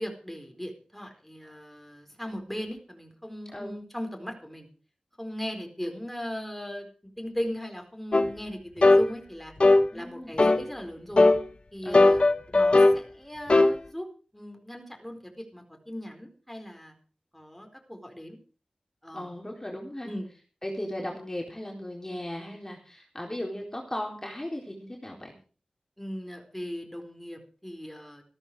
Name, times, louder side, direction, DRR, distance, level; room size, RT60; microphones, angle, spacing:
voice 1, 0.0-4.7 5.2-6.9 7.2-9.5 9.9-11.3 11.7-12.2 12.5-14.1 14.3-16.9 17.3-18.4 19.0-19.3 20.0-20.3 26.0-28.2, equal, 5° left, 3 dB, 4.5 m, -38 dB
voice 2, 3.5-3.8 9.9-10.5 11.8-12.1 19.1-20.1 20.6-25.4, left 1 dB, 20° left, 0 dB, 4.0 m, -37 dB
sound 1, 8.1-8.3 8.8-9.1 9.6-9.9 10.4-10.6 11.2-11.4 11.9-13.0 13.5-13.8, left 2 dB, 50° left, 1.1 m, -18 dB
15.0 x 13.5 x 4.9 m, 0.38 s
wide cardioid pair, 70°, 2 cm